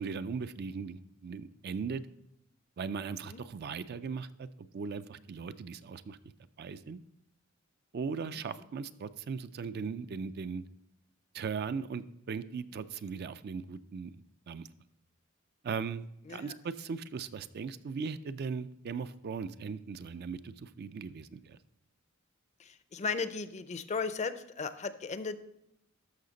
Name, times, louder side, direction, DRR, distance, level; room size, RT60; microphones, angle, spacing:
voice 1, 0.0-2.0 2.8-4.5 4.7-6.2 6.6-7.0 7.9-10.6 11.3-14.2 14.5-14.7 15.6-16.0 16.3-21.6, right 5 dB, 50° right, 12 dB, 0.4 m, -38 dB
voice 2, 22.6-25.4, left 4 dB, 35° left, 12 dB, 0.5 m, -36 dB
13.0 x 5.7 x 4.0 m, 0.80 s
head